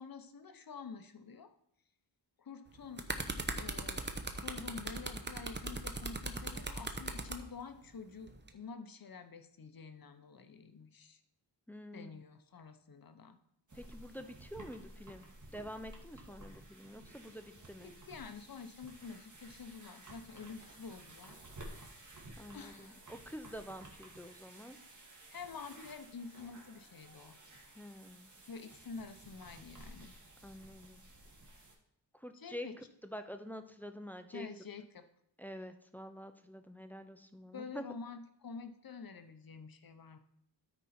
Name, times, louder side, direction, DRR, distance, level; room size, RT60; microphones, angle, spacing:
voice 1, 0.0-1.5 2.4-3.0 3.5-4.0 4.3-11.2 11.9-13.4 17.8-21.4 22.5-23.0 25.3-27.4 28.5-30.2 32.3-32.7 34.3-35.0 37.5-40.2, left 5 dB, 50° left, 9 dB, 0.9 m, -48 dB
sound 1, 2.7-7.4 8.3-8.5, right 3 dB, 25° right, 0.8 m, -38 dB
voice 2, 11.7-12.2 13.7-18.0 22.4-24.8 27.8-28.3 30.4-31.0 32.2-34.5 35.4-37.8, equal, 5° left, 8 dB, 0.6 m, -47 dB
sound 2, 13.7-31.7, right 1 dB, 40° right, 1.9 m, -54 dB
13.0 x 4.5 x 4.3 m, 0.75 s
wide cardioid pair, 110°, 45 cm